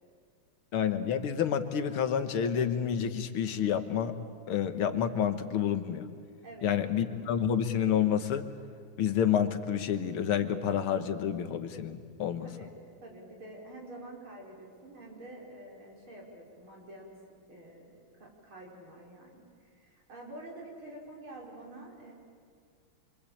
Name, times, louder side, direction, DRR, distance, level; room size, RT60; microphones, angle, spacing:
voice 1, 0.7-4.1 4.5-6.1 6.6-8.5 9.0-12.5, left 8 dB, 85° left, 9 dB, 2.2 m, -29 dB
voice 2, 12.4-12.7 13.0-17.1 17.5-17.8 18.2-22.1, right 1 dB, 75° right, -2 dB, 5.9 m, -48 dB
27.5 x 25.0 x 8.6 m, 2.1 s
omnidirectional pair, 2.3 m